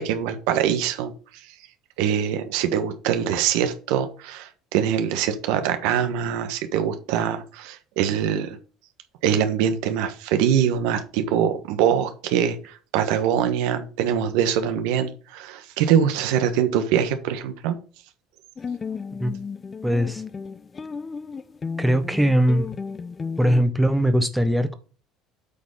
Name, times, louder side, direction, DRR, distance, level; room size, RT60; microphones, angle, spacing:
voice 1, 0.0-1.6 2.0-8.6 9.2-17.8, right 9 dB, 80° right, 1.2 m, -23 dB
sound 1, 18.6-23.6, left 5 dB, 30° left, 0.6 m, -34 dB
voice 2, 19.8-20.2 21.8-22.7 23.4-24.7, equal, 5° right, 1.0 m, -20 dB
8.4 x 4.2 x 5.5 m
supercardioid pair, 90°, 0 cm